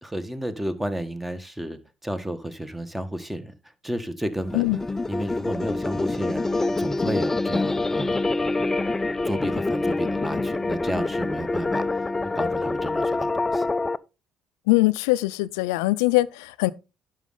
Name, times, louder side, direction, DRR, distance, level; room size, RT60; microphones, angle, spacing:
voice 1, 0.0-3.5 3.8-4.6 5.1-6.5 6.8-8.8 9.2-12.1 12.3-13.7, right 1 dB, 5° right, 1.6 m, -32 dB
sound 1, 4.4-14.0, left 3 dB, 20° left, 0.5 m, -26 dB
voice 2, 14.7-16.7, left 20 dB, 85° left, 0.5 m, -22 dB
11.0 x 6.4 x 3.8 m
hypercardioid pair, 65°, 2 cm